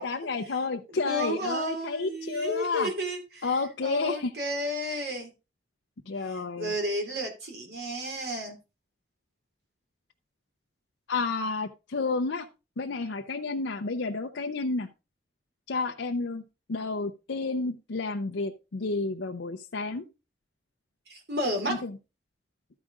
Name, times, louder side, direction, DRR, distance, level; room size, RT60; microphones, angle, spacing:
voice 1, 0.0-2.9 3.4-4.3 6.1-6.7 11.1-12.5 12.8-14.9 15.7-16.4 16.7-20.0 21.7-22.0, left 3 dB, 85° left, 4 dB, 0.6 m, -30 dB
voice 2, 1.0-3.5 3.8-5.3 6.3-8.6 21.1-21.8, equal, 65° right, 3 dB, 2.6 m, -32 dB
12.5 x 5.0 x 3.6 m, 0.28 s
head